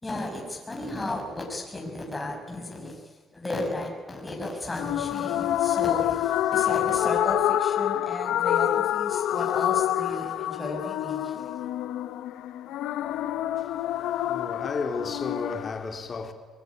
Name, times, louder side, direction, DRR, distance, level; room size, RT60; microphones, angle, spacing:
voice 1, 0.0-3.0 3.3-11.5, left 2 dB, 20° left, 6.4 m, -34 dB
sound 1, 4.8-15.7, left 12 dB, 85° left, 0.9 m, -27 dB
voice 2, 13.1-16.3, left 4 dB, 45° left, 3.6 m, -34 dB
23.5 x 21.0 x 9.6 m
cardioid pair, 90°, 0 cm